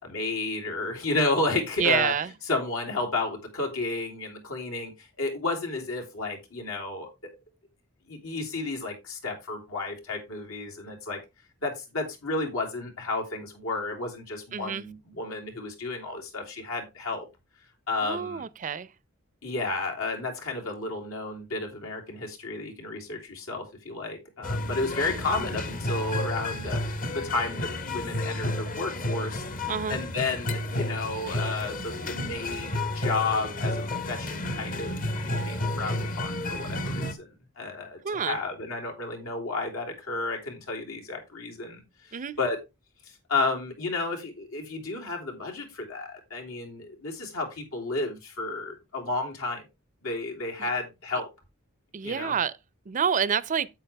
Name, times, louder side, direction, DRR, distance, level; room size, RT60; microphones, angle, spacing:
voice 1, 0.0-2.1 2.5-7.3 8.1-11.2 11.6-17.3 17.9-18.4 19.4-26.8 27.1-37.3 37.6-42.6 43.1-49.7 50.0-51.3 52.0-52.3, left 3 dB, 80° left, 3.2 m, -32 dB
voice 2, 1.8-2.3 14.5-14.9 18.0-18.9 29.7-30.0 38.0-38.4 42.1-42.3 50.6-50.7 51.9-52.5 52.9-53.7, right 7 dB, 40° right, 0.5 m, -28 dB
sound 1, 24.4-37.1, left 1 dB, 40° left, 1.0 m, -31 dB
8.8 x 8.3 x 3.4 m
head